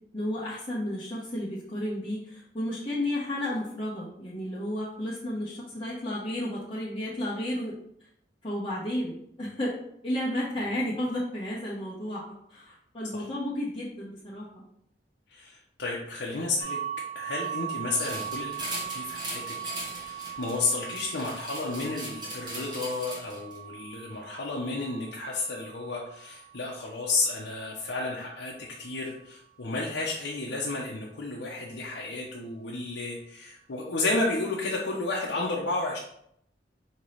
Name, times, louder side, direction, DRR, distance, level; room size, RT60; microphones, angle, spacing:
voice 1, 0.1-7.8 8.4-9.8 10.0-12.2 12.5-14.6, left 1 dB, 30° left, -9 dB, 0.9 m, -32 dB
voice 2, 15.3-16.8 17.1-19.5 19.9-36.0, left 3 dB, 80° left, -4 dB, 0.7 m, -32 dB
sound 1, 16.6-28.3, right 10 dB, 80° right, 1.4 m, -40 dB
sound 2, 17.9-23.6, right 1 dB, 25° right, 0.8 m, -39 dB
5.4 x 2.9 x 3.1 m, 0.73 s
head